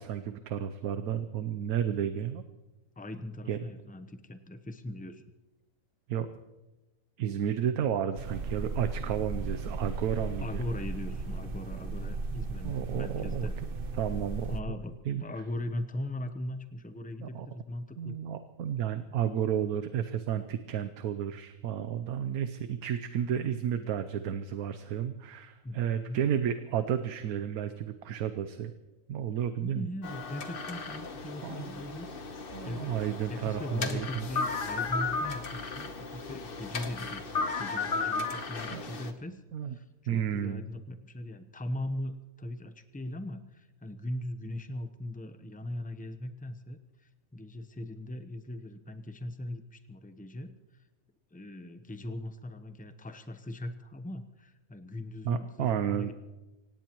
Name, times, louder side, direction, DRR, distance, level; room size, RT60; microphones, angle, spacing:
voice 1, 0.0-2.4 3.5-3.6 6.1-6.3 7.2-10.6 12.6-13.5 14.0-14.7 15.1-15.2 17.2-17.5 18.0-28.7 29.1-29.9 31.4-31.8 32.5-34.3 38.7-38.8 39.5-39.7 40.1-40.6 55.2-56.1, right 9 dB, 75° right, 10 dB, 1.2 m, -32 dB
voice 2, 3.0-5.2 10.4-13.5 14.4-18.2 25.6-26.2 29.6-33.0 33.3-39.4 39.7-50.8 51.3-56.1, left 1 dB, 10° left, 9 dB, 0.6 m, -39 dB
sound 1, 8.1-14.6, right 3 dB, 45° right, 0.9 m, -36 dB
sound 2, 30.0-39.1, left 4 dB, 40° left, 1.1 m, -35 dB
25.5 x 18.0 x 3.0 m, 1.1 s
omnidirectional pair, 1.6 m